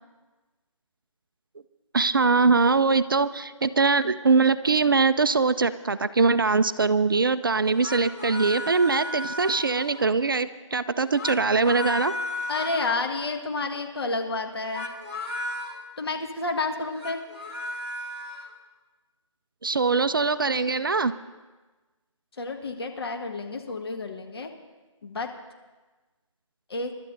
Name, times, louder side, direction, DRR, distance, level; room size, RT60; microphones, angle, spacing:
voice 1, 1.9-12.1 19.6-21.1, right 4 dB, 40° right, 13 dB, 0.4 m, -22 dB
sound 1, 7.6-10.1 11.0-13.0 14.6-15.8 16.8-18.5, left 2 dB, 20° left, 1.4 m, -34 dB
voice 2, 12.5-14.9 16.0-17.2 22.4-24.5 25.0-25.3 26.7-26.9, left 3 dB, 50° left, 3 dB, 1.7 m, -30 dB
29.5 x 12.5 x 2.7 m, 1.2 s
figure-of-eight pair, 160°, 17 cm